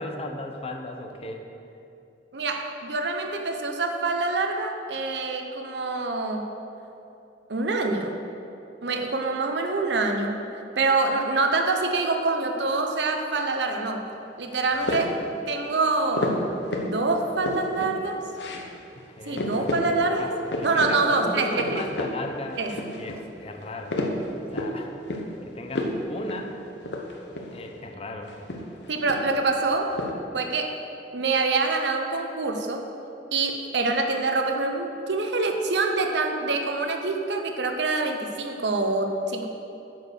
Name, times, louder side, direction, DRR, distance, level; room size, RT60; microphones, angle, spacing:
voice 1, 0.0-1.4 19.0-20.3 20.7-22.6 23.0-24.0 24.5-24.9 25.4-26.5 27.5-28.3, left 2 dB, 35° left, 3 dB, 0.7 m, -36 dB
voice 2, 2.3-6.5 7.5-8.2 8.8-10.4 10.8-14.1 14.4-15.2 15.5-16.4 16.8-18.2 19.3-20.3 20.6-21.9 22.6-22.8 28.9-29.9 30.3-30.7 31.1-32.8 33.3-39.5, right 3 dB, 75° right, 4 dB, 0.8 m, -25 dB
sound 1, 14.7-15.3 16.2-17.0 17.2-17.9 18.3-18.7 19.0-19.1 19.4-19.9 20.2-20.9 21.3-22.2 22.5-23.2 23.6-24.8 25.1-25.4 25.7-26.0 26.3-26.4 26.8-27.6 28.3-29.4 29.7-30.1, left 1 dB, 70° left, 0.9 m, -30 dB
9.9 x 4.7 x 6.5 m, 2.8 s
head